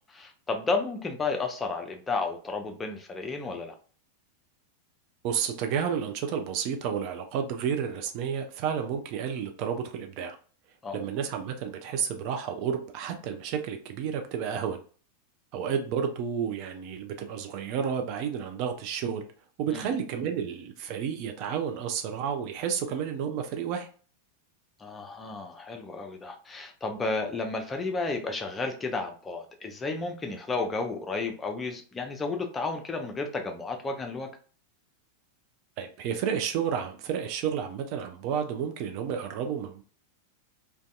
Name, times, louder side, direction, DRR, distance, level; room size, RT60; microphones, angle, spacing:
voice 1, 0.1-3.7 10.8-11.0 19.7-19.9 24.8-34.3, left 3 dB, 15° left, 4 dB, 0.5 m, -32 dB
voice 2, 5.2-10.4 10.9-14.8 15.5-19.3 19.6-23.9 35.8-39.8, right 7 dB, 45° right, 5 dB, 0.4 m, -31 dB
2.5 x 2.2 x 2.3 m, 0.41 s
figure-of-eight pair, 90°, 0 cm